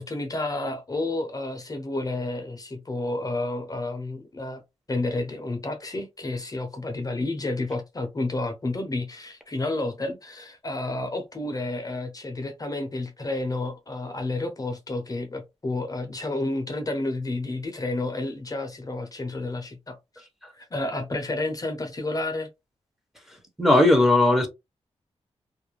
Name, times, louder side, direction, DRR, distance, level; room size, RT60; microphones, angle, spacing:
voice 1, 0.0-4.6 4.9-20.3 20.5-22.5, left 2 dB, 35° left, 0.6 m, -30 dB
voice 2, 23.6-24.5, left 2 dB, 5° right, 0.7 m, -17 dB
2.4 x 2.1 x 3.0 m
wide cardioid pair, 90°, 11 cm